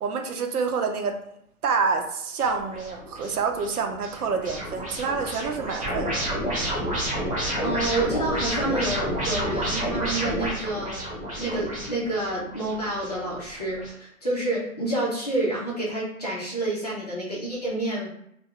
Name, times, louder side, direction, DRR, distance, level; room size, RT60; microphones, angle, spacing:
voice 1, 0.0-1.2 1.6-6.1, right 5 dB, 85° right, 5 dB, 0.7 m, -27 dB
sound 1, 2.4-13.9, equal, 25° right, 1.0 m, -30 dB
voice 2, 7.6-11.1 11.4-18.1, right 1 dB, 30° left, -6 dB, 0.5 m, -28 dB
2.2 x 2.2 x 3.5 m, 0.75 s
hypercardioid pair, 165°, 44 cm